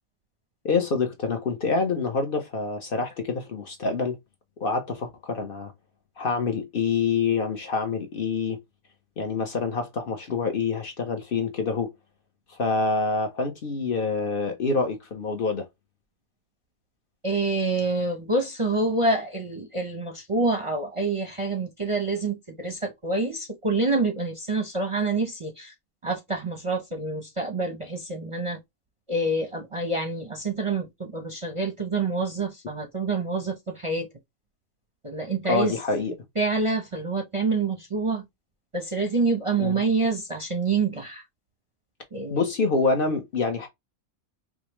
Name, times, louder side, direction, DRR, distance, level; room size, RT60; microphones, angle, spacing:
voice 1, 0.6-4.2 4.6-5.7 6.2-8.6 9.2-11.9 12.5-15.7 35.5-36.1 39.6-39.8 42.3-43.7, left 4 dB, 50° left, 0.8 m, -26 dB
voice 2, 17.2-25.7 26.0-28.6 29.1-34.1 35.0-35.8 36.4-38.2 38.7-41.2 42.1-42.4, right 3 dB, 35° right, 0.6 m, -27 dB
4.9 x 2.0 x 3.0 m
omnidirectional pair, 1.3 m